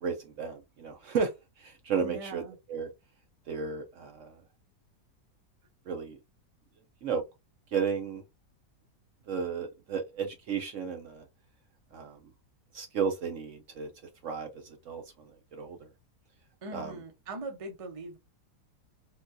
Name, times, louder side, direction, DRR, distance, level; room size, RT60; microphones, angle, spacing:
voice 1, 0.0-2.9 3.5-4.4 5.9-6.2 7.0-7.2 7.7-8.2 9.3-11.2 11.9-12.2 12.7-13.9 14.2-15.9 16.7-17.0, right 6 dB, 65° right, 0.8 m, -34 dB
voice 2, 2.0-2.6 16.6-18.2, right 2 dB, 40° right, 0.5 m, -41 dB
3.7 x 2.3 x 2.6 m
omnidirectional pair, 1.7 m